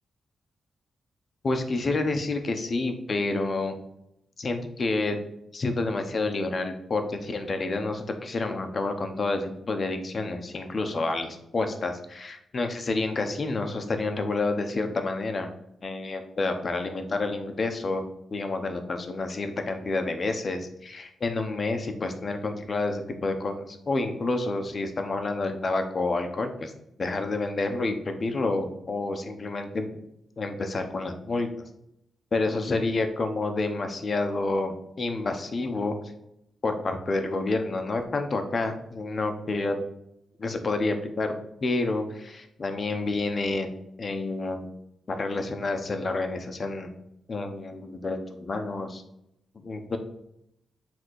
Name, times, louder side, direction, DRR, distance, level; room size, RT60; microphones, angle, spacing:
voice 1, 1.4-3.7 4.4-5.2 5.5-15.5 15.8-18.0 18.3-26.7 27.0-29.9 30.4-31.5 32.3-36.0 36.6-39.8 40.4-41.3 41.6-43.7 44.0-44.7 45.1-46.9 47.3-49.0 49.6-50.0, left 3 dB, 35° left, 6 dB, 0.9 m, -29 dB
7.6 x 3.6 x 6.3 m, 0.80 s
wide cardioid pair, 135°, 0 cm